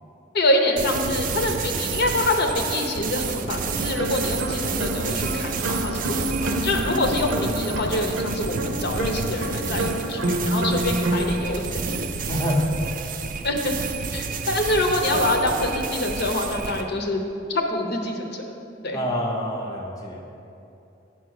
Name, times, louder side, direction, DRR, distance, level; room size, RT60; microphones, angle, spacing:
voice 1, 0.3-12.0 13.4-13.8 14.1-17.2 17.5-18.5 18.8-19.0, left 1 dB, 55° left, 3 dB, 0.7 m, -25 dB
sound 1, 0.8-16.8, right 5 dB, 45° right, 0.4 m, -30 dB
sound 2, 3.7-11.4, right 1 dB, 85° right, 0.8 m, -28 dB
voice 2, 12.3-12.6 18.9-20.2, equal, 20° left, -1 dB, 0.7 m, -26 dB
8.7 x 4.6 x 6.3 m, 2.8 s
head